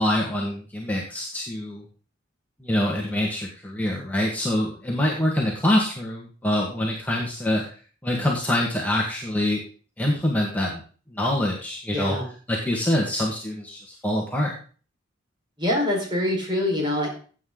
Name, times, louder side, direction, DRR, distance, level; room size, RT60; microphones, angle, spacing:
voice 1, 0.0-1.8 2.6-7.6 8.0-9.6 10.0-10.8 11.1-12.2 12.5-14.5, left 1 dB, 10° left, -2 dB, 1.8 m, -25 dB
voice 2, 11.9-12.3 15.6-17.1, left 1 dB, 25° right, -1 dB, 5.0 m, -24 dB
15.5 x 8.4 x 3.9 m, 0.40 s
head